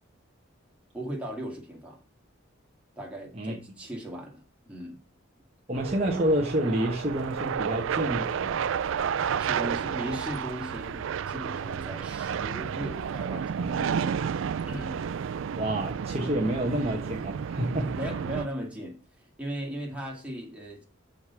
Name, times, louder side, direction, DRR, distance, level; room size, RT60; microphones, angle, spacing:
voice 1, 0.9-2.0 3.0-5.0 9.4-14.3 14.7-15.0 17.9-20.8, right 1 dB, 5° right, 2.1 m, -37 dB
voice 2, 5.7-8.6 15.6-17.9, equal, 30° right, 1.2 m, -28 dB
sound 1, 5.7-18.5, right 7 dB, 65° right, 0.3 m, -31 dB
6.6 x 5.2 x 5.9 m
head